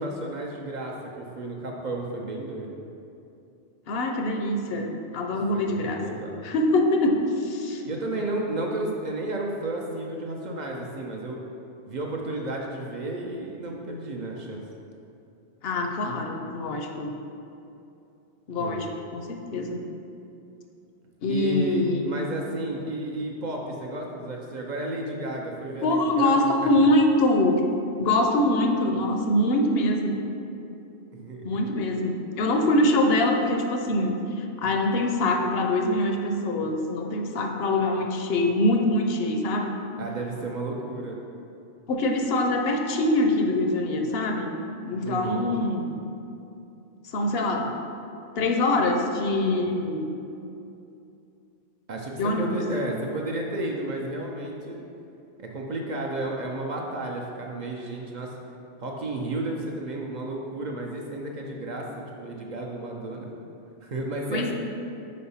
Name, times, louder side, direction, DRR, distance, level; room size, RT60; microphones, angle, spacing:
voice 1, 0.0-2.7 5.5-6.4 7.8-11.4 11.9-14.6 18.6-18.8 21.3-26.9 31.1-31.6 40.0-41.2 45.0-45.5 51.9-54.9 55.4-58.4 58.8-63.3 63.8-64.5, right 2 dB, 55° right, 0 dB, 0.5 m, -32 dB
voice 2, 3.9-7.8 8.2-8.3 15.6-17.1 18.5-19.8 21.2-22.2 25.8-27.6 28.0-30.2 31.4-39.7 41.9-44.5 44.9-45.9 47.1-47.7 48.4-50.1 52.2-52.6 64.3-64.5, left 1 dB, 65° left, 3 dB, 0.7 m, -24 dB
4.3 x 4.3 x 5.5 m, 2.7 s
omnidirectional pair, 1.3 m